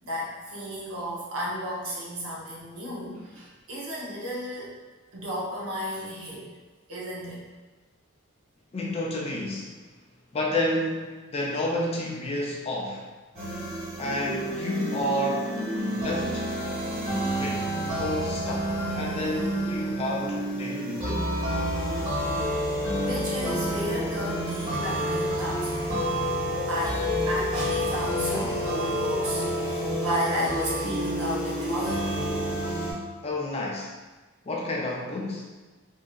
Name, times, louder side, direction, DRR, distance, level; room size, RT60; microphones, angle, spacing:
voice 1, 0.0-4.7 5.1-6.4 6.9-7.5 23.0-26.0 26.7-32.1, equal, 80° right, -5 dB, 0.9 m, -33 dB
voice 2, 8.7-9.8 10.3-13.1 14.0-15.5 15.9-16.5 17.4-21.3 33.2-33.9 34.5-35.5, left 1 dB, 30° left, -2 dB, 0.4 m, -30 dB
sound 1, 13.3-32.9, equal, 35° right, 1.1 m, -29 dB
3.5 x 2.6 x 2.3 m, 1.3 s
head